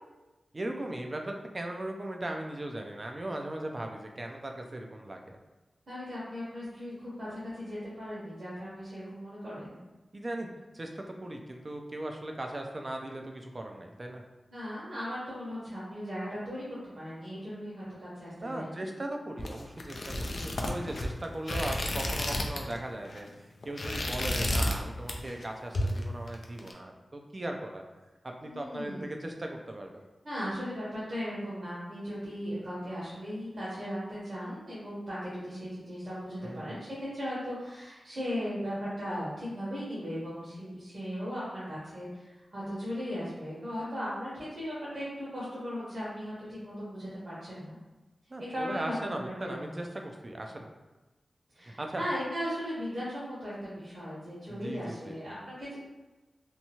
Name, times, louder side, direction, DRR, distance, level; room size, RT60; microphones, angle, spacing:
voice 1, 0.5-5.4 10.1-10.5 10.7-14.2 18.4-27.8 28.2-30.0 36.4-36.8 48.3-50.7 51.6-52.0 54.5-55.2, right 1 dB, 40° right, 2 dB, 0.4 m, -38 dB
voice 2, 5.9-9.8 14.5-18.9 28.4-29.2 30.2-47.8 48.4-49.2 49.4-49.8 51.5-55.8, equal, 55° right, -10 dB, 1.1 m, -37 dB
sound 1, 19.4-22.8 23.0-23.3 23.6-24.8 25.1-25.4 25.7-26.7, left 1 dB, 70° left, 0.4 m, -31 dB
2.8 x 2.3 x 2.9 m, 1.1 s
cardioid pair, 60°, 0 cm